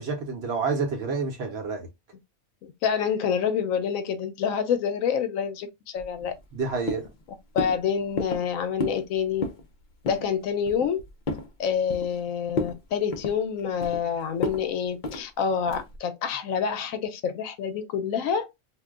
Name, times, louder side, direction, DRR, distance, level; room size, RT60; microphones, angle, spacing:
voice 1, 0.0-1.9 6.5-7.0, right 4 dB, 55° right, 0.9 m, -28 dB
voice 2, 2.6-5.7 5.9-6.3 7.5-9.4 10.0-11.0 11.6-18.5, left 7 dB, 80° left, 1.0 m, -27 dB
sound 1, 6.0-6.6 6.9-7.2 7.6-7.8 8.2-8.5 8.8-9.1 9.3-9.7 10.1-10.3 10.7-11.5 11.9-12.2 12.5-12.8 13.1-14.0 14.4-14.6 15.0-15.2 15.7-16.0, left 3 dB, 55° left, 0.5 m, -31 dB
2.5 x 2.2 x 3.6 m
omnidirectional pair, 1.4 m